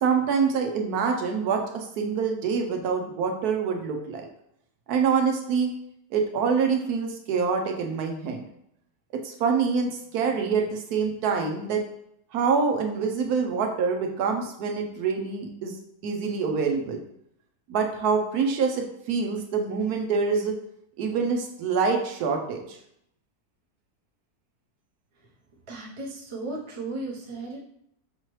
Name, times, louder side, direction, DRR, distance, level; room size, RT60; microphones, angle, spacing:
voice 1, 0.0-4.3 4.9-5.7 6.1-8.4 9.4-11.8 12.3-15.8 16.0-17.0 17.7-20.5 21.0-22.6, right 5 dB, 75° right, 3 dB, 1.1 m, -25 dB
voice 2, 25.7-27.6, right 2 dB, 25° right, -4 dB, 0.6 m, -35 dB
5.5 x 2.9 x 3.0 m, 0.75 s
omnidirectional pair, 1.7 m